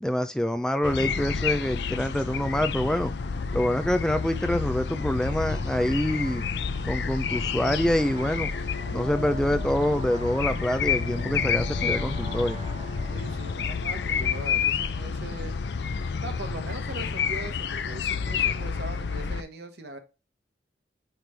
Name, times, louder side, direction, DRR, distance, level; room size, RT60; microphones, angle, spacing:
voice 1, 0.0-3.1 3.5-6.4 6.8-8.5 8.9-12.6, left 1 dB, 5° left, 0.3 m, -26 dB
sound 1, 0.8-19.4, left 6 dB, 70° left, 0.5 m, -29 dB
sound 2, 1.0-17.3, left 1 dB, 35° left, 2.4 m, -48 dB
sound 3, 4.5-14.8, right 2 dB, 30° right, 0.9 m, -43 dB
voice 2, 13.1-15.5 16.2-20.0, right 2 dB, 70° right, 1.2 m, -40 dB
9.0 x 3.2 x 3.3 m
head